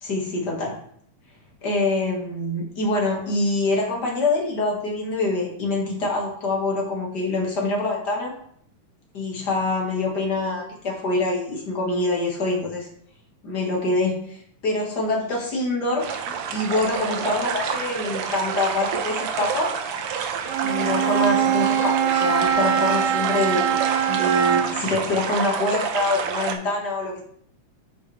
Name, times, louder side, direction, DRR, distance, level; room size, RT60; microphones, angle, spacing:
voice 1, 0.0-0.7 1.6-8.3 9.1-12.9 13.4-14.4 14.6-16.1 16.5-19.7 20.6-23.8 24.1-27.2, left 2 dB, 40° left, -2 dB, 1.8 m, -25 dB
sound 1, 16.0-26.5, right 7 dB, 70° right, 1.4 m, -29 dB
Bowed string instrument, 20.5-24.9, right 9 dB, 85° right, 2.2 m, -22 dB
9.0 x 7.0 x 3.3 m, 0.66 s
omnidirectional pair, 3.4 m